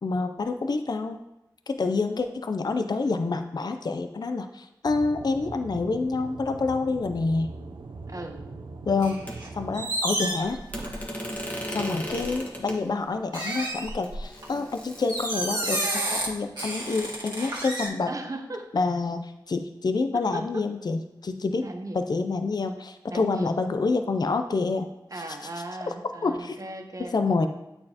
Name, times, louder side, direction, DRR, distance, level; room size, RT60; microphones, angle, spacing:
voice 1, 0.0-1.2 1.7-7.5 8.9-9.2 9.5-10.6 11.7-18.1 18.7-21.7 21.9-24.9 25.3-25.4 26.2-26.6 27.1-27.5, left 3 dB, 55° left, 7 dB, 0.4 m, -27 dB
Aircraft / Engine, 4.9-9.9, right 3 dB, 80° right, 0.5 m, -41 dB
voice 2, 8.1-8.4 18.1-18.8 20.1-20.7 21.6-22.0 23.1-23.5 25.1-27.1, right 2 dB, 45° right, 4 dB, 0.8 m, -37 dB
sound 1, 9.0-9.5 9.7-11.2 12.1-12.3 13.3-14.4 15.1-16.3 16.6-17.9, right 1 dB, 60° right, 1.5 m, -30 dB
sound 2, 9.3-9.4 10.7-12.8 13.7-13.8 14.0-15.7 16.6-17.2, equal, 20° left, 1.2 m, -36 dB
8.6 x 4.3 x 2.8 m, 0.91 s
wide cardioid pair, 60°, 8 cm